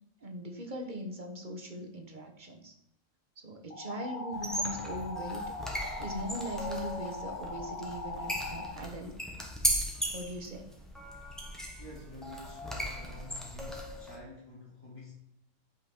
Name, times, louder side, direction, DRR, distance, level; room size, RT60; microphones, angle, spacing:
voice 1, 0.2-2.7 3.4-5.4 6.0-9.1 10.1-10.7, equal, 40° right, 3 dB, 1.1 m, -40 dB
sound 1, 3.7-8.7, left 2 dB, 55° left, 1.4 m, -40 dB
sound 2, 4.3-14.2, equal, ahead, 1.1 m, -37 dB
voice 2, 11.8-15.1, left 2 dB, 20° left, -8 dB, 2.2 m, -49 dB
5.8 x 5.5 x 4.3 m, 0.84 s
omnidirectional pair, 1.4 m